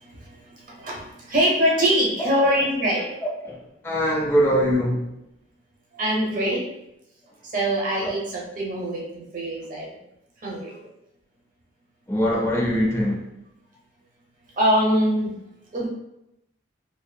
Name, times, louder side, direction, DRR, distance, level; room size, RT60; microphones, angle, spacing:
voice 1, 0.1-3.1 5.9-6.6 7.4-9.9 10.4-10.8 14.6-15.3 15.7-15.9, equal, 45° right, -3 dB, 0.7 m, -23 dB
voice 2, 3.8-5.0 12.1-13.2, equal, 15° left, -2 dB, 0.3 m, -22 dB
2.7 x 2.6 x 2.2 m, 0.85 s
head